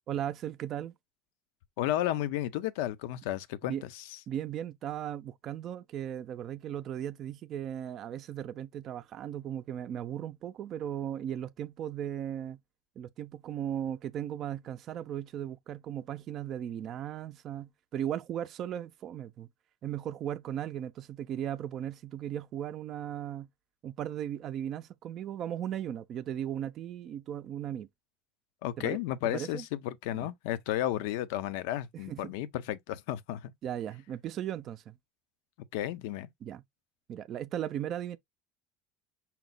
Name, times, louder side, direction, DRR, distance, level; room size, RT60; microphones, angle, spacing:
voice 1, 0.1-0.9 3.6-3.8 4.3-12.6 13.0-19.5 19.8-23.5 23.8-27.9 28.8-29.0 29.2-29.6 30.1-30.3 32.1-32.3 33.6-35.0 36.4-36.6 37.1-38.2, right 10 dB, 50° right, 0.4 m, -37 dB
voice 2, 1.8-4.0 28.6-33.5 35.7-36.3, left 13 dB, 75° left, 0.5 m, -33 dB
5.7 x 2.0 x 3.9 m
hypercardioid pair, 85°, 0 cm